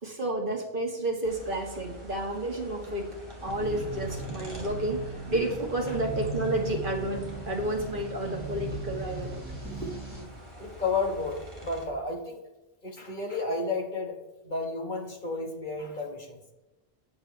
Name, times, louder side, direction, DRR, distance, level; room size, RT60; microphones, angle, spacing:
voice 1, 0.0-3.2 3.4-9.4 9.8-10.2, right 1 dB, 55° right, 1 dB, 2.1 m, -31 dB
sound 1, 1.2-11.8, equal, 30° right, 2.7 m, -46 dB
sound 2, 3.4-10.2, right 2 dB, 10° right, 4.4 m, -38 dB
voice 2, 10.6-12.4 12.8-14.2 14.4-16.4, left 3 dB, 50° left, 2 dB, 1.7 m, -32 dB
13.0 x 10.5 x 3.4 m, 1.0 s
omnidirectional pair, 1.1 m